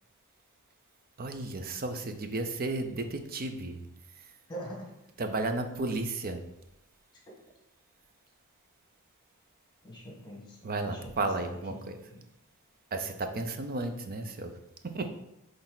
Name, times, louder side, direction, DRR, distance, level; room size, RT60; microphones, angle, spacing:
voice 1, 1.2-3.9 5.2-6.4 10.6-12.0 12.9-14.5 14.8-15.1, right 2 dB, 40° right, 7 dB, 0.6 m, -33 dB
voice 2, 4.5-4.9 9.8-11.8 12.1-12.2, equal, 20° left, -2 dB, 1.7 m, -43 dB
8.5 x 3.4 x 3.9 m, 0.86 s
head